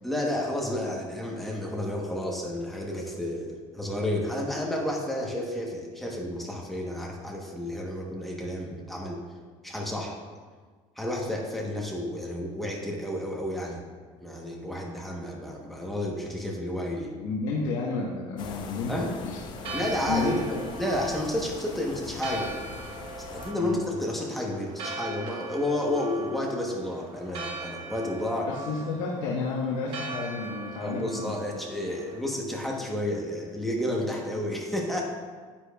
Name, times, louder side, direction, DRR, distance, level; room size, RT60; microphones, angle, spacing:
voice 1, 0.0-9.2 9.6-10.2 11.0-13.8 14.2-17.1 18.9-19.1 19.7-22.5 23.2-28.5 30.8-35.0, left 1 dB, ahead, -2 dB, 0.9 m, -31 dB
voice 2, 17.2-19.8 20.1-20.6 23.6-23.8 28.5-31.4 31.8-32.1, left 3 dB, 85° left, -3 dB, 1.1 m, -31 dB
sound 1, 18.4-23.5, left 5 dB, 35° left, 0.6 m, -41 dB
Church bell, 19.5-32.2, right 3 dB, 45° right, 0.9 m, -40 dB
9.9 x 8.4 x 2.3 m, 1.5 s
cardioid pair, 180°, 13 cm